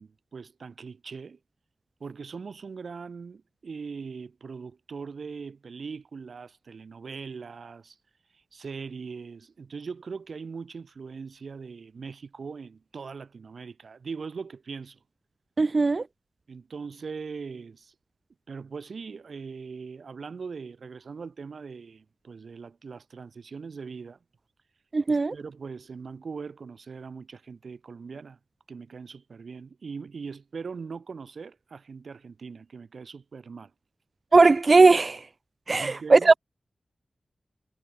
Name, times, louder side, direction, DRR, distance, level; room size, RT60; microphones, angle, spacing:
voice 1, 0.0-1.4 2.0-8.0 8.3-15.0 16.5-17.9 18.5-24.2 25.1-28.4 28.7-33.7 35.8-36.4, right 5 dB, 75° right, 6.9 m, -40 dB
voice 2, 15.6-16.0 24.9-25.3 34.3-35.2 35.7-36.3, right 3 dB, 45° right, 0.3 m, -18 dB
wide cardioid pair, 105°, 0 cm